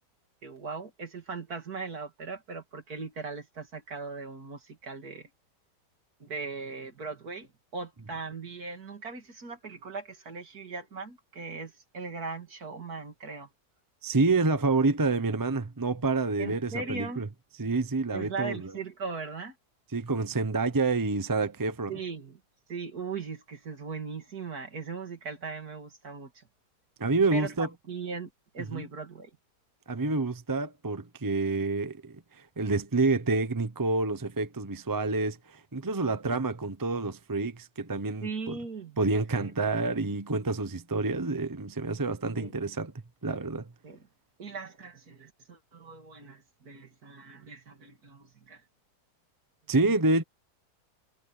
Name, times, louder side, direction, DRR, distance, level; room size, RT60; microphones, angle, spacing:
voice 1, 0.4-5.3 6.2-13.5 16.4-17.2 18.1-19.6 21.9-22.4 22.7-26.5 27.3-29.3 36.2-36.4 38.2-39.0 39.4-39.5 42.3-42.5 43.8-44.0 44.4-48.6, right 4 dB, 60° right, 3.1 m, -39 dB
voice 2, 14.0-17.3 17.6-18.7 19.9-21.9 27.0-27.7 28.7-28.8 29.9-32.2 32.6-38.6 39.0-42.9 43.2-43.7 49.7-50.2, right 3 dB, 20° right, 0.6 m, -28 dB
omnidirectional pair, 1.8 m